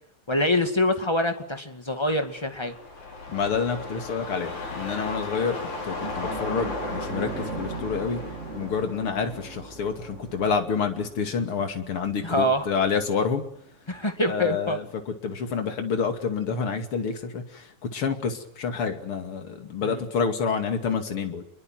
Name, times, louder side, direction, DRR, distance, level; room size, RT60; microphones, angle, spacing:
voice 1, 0.3-2.7 12.2-12.7 13.9-14.8 19.8-20.0, left 1 dB, 10° left, 7 dB, 1.6 m, -25 dB
sound 1, 2.1-10.6 10.9-11.0, left 3 dB, 75° left, 7.1 m, -36 dB
voice 2, 3.3-5.6 5.8-8.2 8.5-13.4 14.3-21.4, left 5 dB, 50° left, 7 dB, 3.2 m, -28 dB
sound 2, 6.0-14.9 15.3-15.4 17.5-17.6, right 3 dB, 25° right, 2.3 m, -39 dB
27.0 x 22.5 x 9.3 m, 0.68 s
omnidirectional pair, 3.4 m